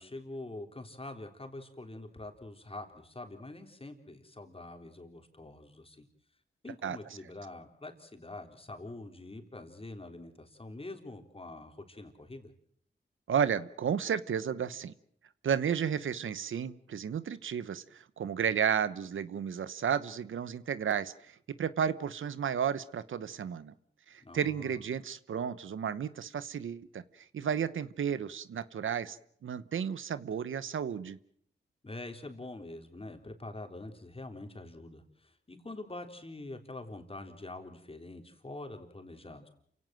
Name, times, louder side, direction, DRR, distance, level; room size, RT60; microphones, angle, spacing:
voice 1, 0.0-6.1 6.6-12.5 24.2-24.8 31.8-39.5, left 2 dB, 30° left, 5 dB, 3.6 m, -45 dB
voice 2, 13.3-14.9 15.4-23.7 24.1-29.2 29.4-31.2, right 8 dB, 90° right, 16 dB, 0.9 m, -33 dB
28.5 x 17.0 x 7.6 m, 0.66 s
cardioid pair, 70°, 20 cm